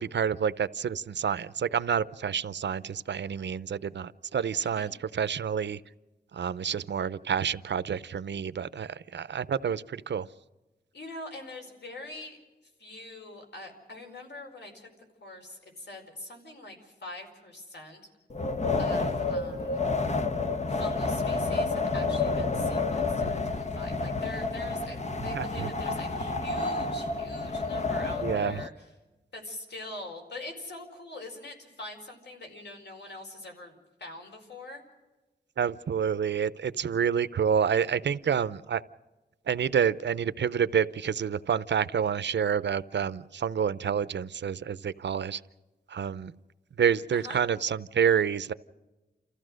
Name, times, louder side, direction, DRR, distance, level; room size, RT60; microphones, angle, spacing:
voice 1, 0.0-5.8 6.3-10.3 25.3-25.7 28.2-28.6 35.6-38.8 39.5-45.4 45.9-46.3 46.8-48.5, right 7 dB, 85° right, 16 dB, 0.6 m, -28 dB
voice 2, 10.9-12.4 12.8-14.9 15.2-18.0 18.8-19.9 20.7-28.7 29.3-33.7 34.0-34.8 47.1-47.4, left 2 dB, 75° left, 3 dB, 4.9 m, -43 dB
Wind, 18.3-28.7, left 3 dB, 40° left, 1.0 m, -29 dB
29.5 x 15.0 x 6.3 m, 1.1 s
wide cardioid pair, 110°, 18 cm